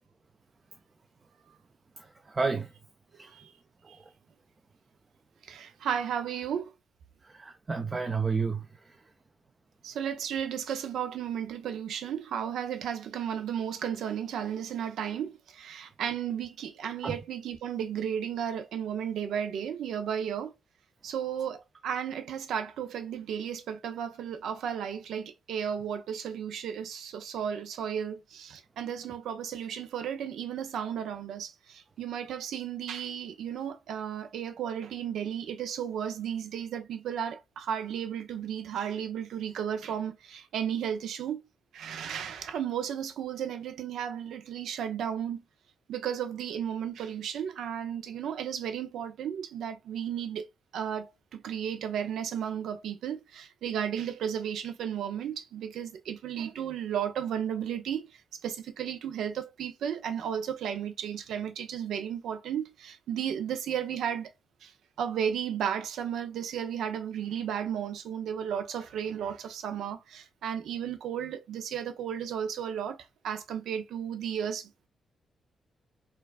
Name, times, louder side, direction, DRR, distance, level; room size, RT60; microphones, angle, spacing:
voice 1, 2.0-2.7 3.2-3.3 7.2-8.6 17.0-17.2, right 4 dB, 30° right, 0.4 m, -31 dB
voice 2, 5.4-6.7 9.8-20.5 21.0-41.4 41.7-45.4 45.9-50.5 50.7-58.1 58.4-64.3 64.6-64.7 65.0-73.0 73.2-74.7, right 8 dB, 85° right, 0.5 m, -34 dB
4.4 x 2.3 x 2.3 m
cardioid pair, 110°, 0 cm